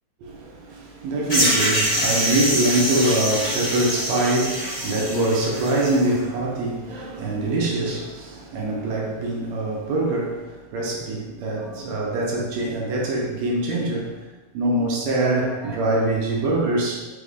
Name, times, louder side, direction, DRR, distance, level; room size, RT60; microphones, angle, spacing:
voice 1, 0.2-14.3 14.5-17.1, right 2 dB, 75° right, 1.7 m, -24 dB
sound 1, 1.3-6.0, equal, 85° left, 0.4 m, -24 dB
5.0 x 3.4 x 2.4 m
omnidirectional pair, 3.7 m